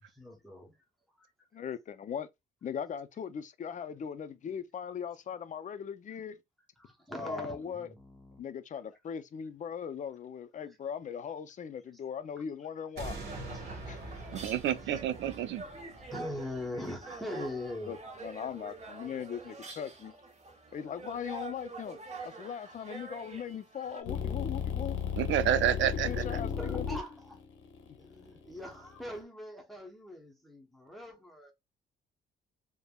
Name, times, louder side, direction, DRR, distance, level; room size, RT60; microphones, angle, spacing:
voice 1, 0.2-0.8 1.2-1.3 6.8-8.4 13.5-13.6 16.1-18.0 26.6-27.4 28.0-31.5, left 1 dB, ahead, 0.8 m, -41 dB
voice 2, 1.5-2.3 2.6-6.4 7.2-7.9 8.4-13.2 13.8-14.2 17.9-18.0 18.2-20.1 20.7-22.0 22.2-25.0 26.1-26.9 27.9-28.0, left 8 dB, 40° left, 0.4 m, -39 dB
sound 1, 13.0-18.1 18.5-18.6, right 2 dB, 55° right, 1.3 m, -45 dB
sound 2, 13.2-24.0, right 3 dB, 35° right, 1.0 m, -47 dB
voice 3, 14.3-15.6 25.1-26.2, right 11 dB, 70° right, 0.4 m, -29 dB
sound 3, 24.0-29.2, left 7 dB, 80° left, 0.8 m, -35 dB
3.3 x 2.1 x 2.2 m
cardioid pair, 90°, 20 cm